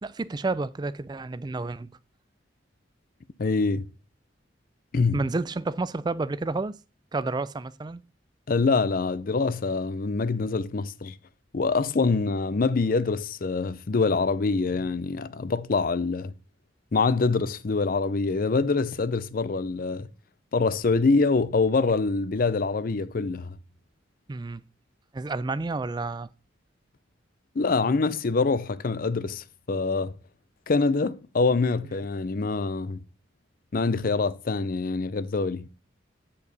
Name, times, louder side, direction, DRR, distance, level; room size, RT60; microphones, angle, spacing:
voice 1, 0.0-1.9 5.1-6.8 7.1-8.0 24.3-24.6 25.1-26.3, right 3 dB, 25° right, 0.4 m, -30 dB
voice 2, 3.4-3.9 4.9-5.2 8.5-11.2 11.5-16.3 16.9-20.1 20.5-23.6 27.6-30.1 30.7-33.0 33.7-35.7, left 4 dB, 50° left, 0.5 m, -25 dB
8.9 x 5.5 x 4.0 m
head